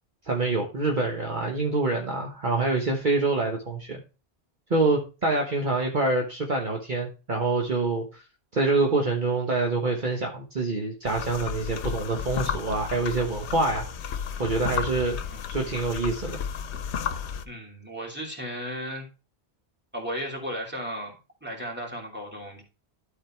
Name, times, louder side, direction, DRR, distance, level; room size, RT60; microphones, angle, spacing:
voice 1, 0.3-4.0 4.7-8.2 8.5-13.8 14.4-15.2 15.5-16.4, right 3 dB, 45° right, 1 dB, 1.3 m, -26 dB
sound 1, 11.1-17.5, left 7 dB, 90° left, 1.0 m, -33 dB
voice 2, 17.4-19.1 19.9-22.6, equal, 10° right, -1 dB, 2.9 m, -35 dB
12.5 x 4.1 x 4.4 m, 0.31 s
omnidirectional pair, 1.1 m